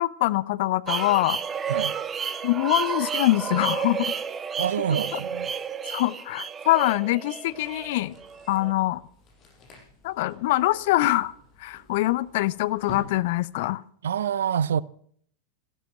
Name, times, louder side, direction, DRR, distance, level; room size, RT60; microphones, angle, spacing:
voice 1, 0.0-1.4 2.4-4.1 5.9-8.1 8.5-9.0 10.0-11.3 11.6-13.8, left 17 dB, 50° left, 0.7 m, -24 dB
sound 1, 0.9-8.7, right 6 dB, 20° right, 0.8 m, -31 dB
voice 2, 4.6-5.5 14.0-14.8, right 8 dB, 65° right, 0.6 m, -26 dB
sound 2, 7.5-13.7, left 4 dB, 30° left, 6.0 m, -47 dB
14.5 x 12.5 x 7.7 m
figure-of-eight pair, 90°, 0 cm